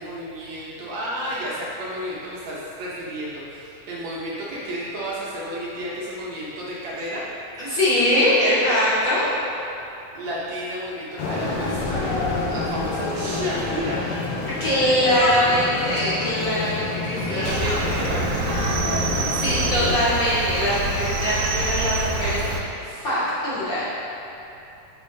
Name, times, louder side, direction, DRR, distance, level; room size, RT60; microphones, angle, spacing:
voice 1, 0.0-7.3 8.2-8.3 10.1-12.2 12.5-14.0 17.3-18.7, equal, 65° right, -6 dB, 2.0 m, -31 dB
voice 2, 7.6-9.3 14.6-17.6 19.3-23.8, left 1 dB, 40° left, -12 dB, 2.2 m, -22 dB
sound 1, 11.2-19.9, left 3 dB, 70° left, 1.4 m, -27 dB
Cricket, 17.4-22.6, right 3 dB, 85° right, 2.3 m, -26 dB
10.5 x 6.4 x 2.7 m, 2.9 s
omnidirectional pair, 3.7 m